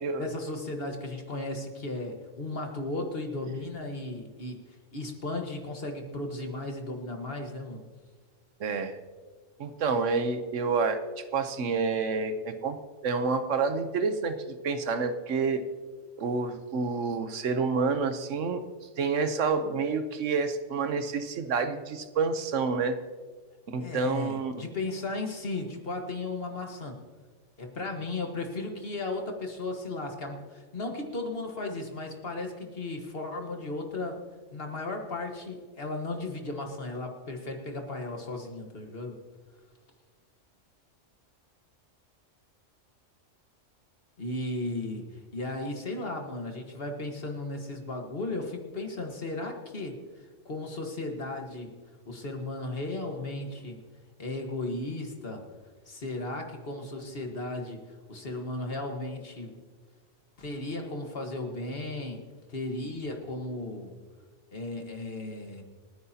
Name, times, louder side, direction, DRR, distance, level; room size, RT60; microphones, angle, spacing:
voice 1, 0.2-4.6 4.9-7.8 23.8-27.0 27.6-34.2 34.5-39.2 44.2-50.0 50.5-51.8 52.1-53.8 54.2-55.5 55.9-59.6 60.4-63.9 64.5-65.6, left 2 dB, 50° left, 3 dB, 1.7 m, -35 dB
voice 2, 8.6-9.0 9.6-12.8 13.0-15.6 16.2-18.6 19.0-23.0 23.7-24.5, right 4 dB, 75° right, 9 dB, 1.2 m, -28 dB
28.5 x 9.5 x 2.8 m, 1.5 s
omnidirectional pair, 1.3 m